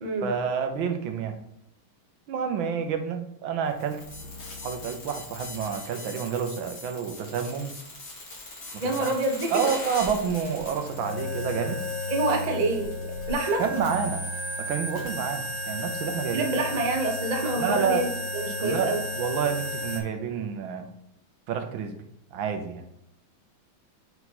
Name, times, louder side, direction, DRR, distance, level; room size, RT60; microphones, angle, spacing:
voice 1, 0.2-1.4 2.3-4.0 4.6-7.8 9.0-9.1 9.5-11.8 13.6-14.2 14.6-16.5 17.6-18.1 18.6-20.9 21.5-22.0 22.3-22.8, right 7 dB, 75° right, 6 dB, 1.4 m, -29 dB
sound 1, 3.7-20.0, left 1 dB, 40° left, 1.8 m, -35 dB
voice 2, 8.8-9.6 12.1-12.9 13.3-13.6 16.3-19.0, right 2 dB, 55° right, 2 dB, 0.4 m, -27 dB
5.4 x 4.6 x 4.1 m, 0.77 s
omnidirectional pair, 2.3 m